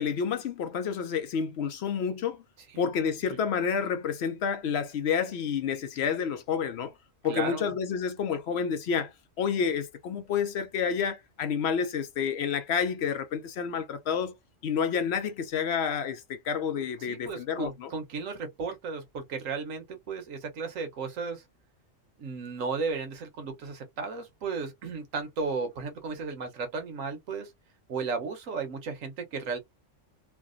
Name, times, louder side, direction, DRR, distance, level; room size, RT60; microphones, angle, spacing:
voice 1, 0.0-2.4 2.8-6.9 7.2-9.1 9.4-14.4 14.6-17.9, left 7 dB, 65° left, 0.7 m, -29 dB
voice 2, 7.2-7.7 17.0-21.4 22.2-27.5 27.9-29.6, right 4 dB, 90° right, 1.3 m, -34 dB
3.2 x 2.2 x 2.5 m
omnidirectional pair, 1.3 m